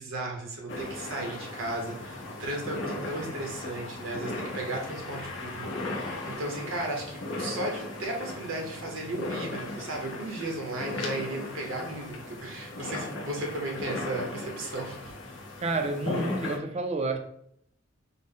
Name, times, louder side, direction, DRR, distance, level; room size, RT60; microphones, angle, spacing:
voice 1, 0.0-15.1, right 2 dB, 80° right, 1 dB, 0.9 m, -35 dB
sound 1, 0.7-16.6, left 2 dB, 65° left, 0.8 m, -37 dB
voice 2, 15.6-17.2, right 2 dB, 30° right, 5 dB, 0.4 m, -29 dB
3.8 x 2.0 x 3.7 m, 0.70 s
head